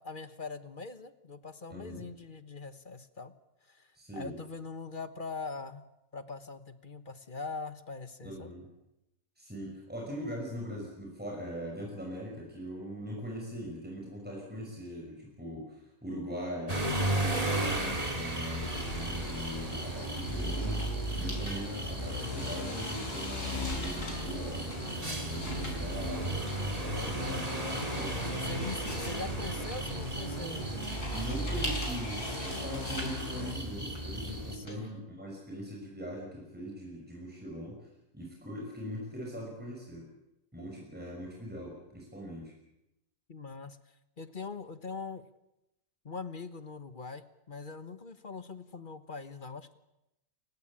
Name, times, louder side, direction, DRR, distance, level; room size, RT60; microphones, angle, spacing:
voice 1, 0.0-3.3 3.6-5.9 6.1-8.5 26.9-27.5 28.4-30.8 34.5-34.9 43.3-43.8 44.2-45.2 46.0-49.8, left 4 dB, 35° left, 11 dB, 1.3 m, -42 dB
voice 2, 1.7-2.0 3.9-4.4 8.2-8.7 9.4-26.4 26.7-29.0 31.1-37.8 38.1-40.1 40.5-42.5, equal, 5° right, -1 dB, 6.0 m, -41 dB
sound 1, 16.7-34.6, right 1 dB, 25° right, 2.9 m, -36 dB
sound 2, 18.6-33.5, equal, 15° left, 4.1 m, -38 dB
sound 3, 20.2-34.7, left 1 dB, 75° left, 6.3 m, -43 dB
29.0 x 16.5 x 8.7 m, 0.89 s
omnidirectional pair, 1.7 m